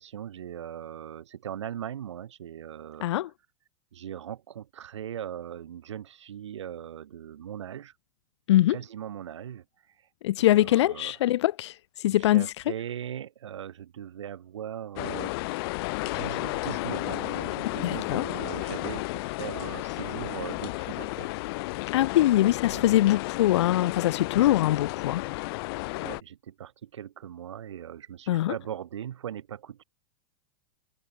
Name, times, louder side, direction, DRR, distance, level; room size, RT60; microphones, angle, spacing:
voice 1, 0.0-3.3 3.9-7.9 8.7-9.6 10.4-11.2 12.1-15.4 16.0-21.3 22.7-22.9 26.0-29.8, right 10 dB, 80° right, 3.6 m, -39 dB
voice 2, 10.2-11.7 12.0-12.5 17.8-18.2 21.9-25.2 28.3-28.5, left 14 dB, 75° left, 0.4 m, -23 dB
sound 1, 15.0-26.2, left 23 dB, 55° left, 1.1 m, -33 dB
hypercardioid pair, 110°, 15 cm